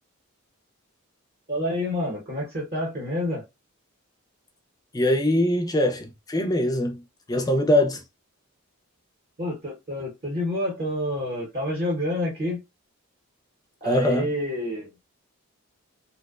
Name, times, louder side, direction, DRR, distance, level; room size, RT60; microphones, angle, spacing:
voice 1, 1.5-3.4 9.4-12.6 13.8-14.9, left 1 dB, 40° right, 0.7 m, -28 dB
voice 2, 4.9-7.0 7.3-8.0 13.8-14.3, left 1 dB, 15° left, 0.3 m, -22 dB
2.5 x 2.1 x 2.3 m
head